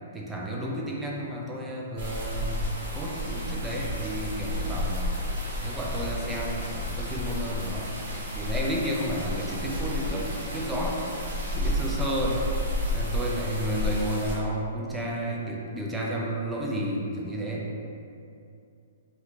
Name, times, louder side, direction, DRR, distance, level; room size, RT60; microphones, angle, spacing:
voice 1, 0.1-2.6 2.9-5.1 5.6-7.9 8.3-11.0 11.5-12.4 12.9-17.7, right 1 dB, 10° right, -4 dB, 0.5 m, -32 dB
sound 1, 2.0-14.3, left 1 dB, 60° right, 1.0 m, -31 dB
sound 2, 3.7-9.2, left 1 dB, 40° left, 0.8 m, -41 dB
2.7 x 2.4 x 3.6 m, 2.6 s
hypercardioid pair, 135°, 0 cm